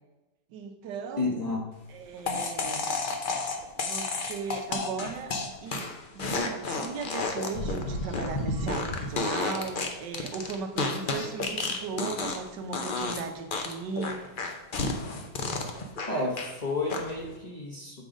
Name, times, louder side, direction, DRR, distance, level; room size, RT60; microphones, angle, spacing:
voice 1, 0.5-1.3 1.9-2.9 3.8-5.3 5.6-5.9 6.1-14.2, right 5 dB, 90° right, 6 dB, 1.4 m, -37 dB
voice 2, 1.2-1.6 16.1-18.1, left 2 dB, 30° left, -2 dB, 1.0 m, -31 dB
sound 1, 2.3-12.5 12.7-13.2 13.5-16.5 16.9-17.3, left 3 dB, 50° left, 0.6 m, -31 dB
7.9 x 3.8 x 5.0 m, 1.1 s
omnidirectional pair, 1.8 m